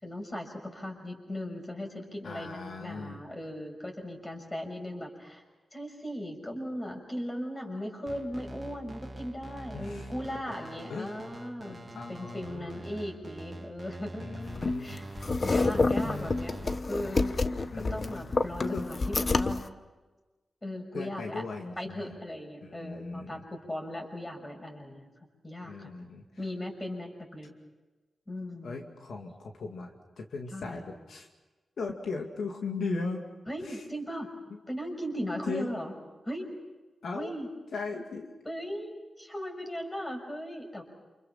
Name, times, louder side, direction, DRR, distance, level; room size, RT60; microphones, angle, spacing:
voice 1, 0.0-5.4 5.7-14.4 14.8-16.6 16.9-17.4 17.7-19.7 20.6-21.4 21.8-25.1 25.4-25.9 26.4-27.5 28.3-28.8 30.5-30.9 33.5-34.3 34.7-35.9 36.2-36.5 37.1-37.5 38.4-40.8, equal, 20° left, 2 dB, 6.4 m, -38 dB
voice 2, 2.2-3.2 9.7-10.4 10.9-11.1 11.6-12.8 14.2-15.1 16.0-16.4 17.7-18.3 18.6-18.8 20.9-22.1 22.6-23.4 25.6-26.2 28.6-31.3 31.8-33.2 33.6-33.8 35.5-35.7 37.0-37.3 37.7-38.3, left 4 dB, 80° left, 2 dB, 2.4 m, -38 dB
sound 1, 8.1-16.8, right 2 dB, 30° right, 2.3 m, -45 dB
sound 2, 14.5-19.7, left 3 dB, 40° left, 0.9 m, -28 dB
29.0 x 28.0 x 5.9 m, 1.2 s
wide cardioid pair, 90°, 0 cm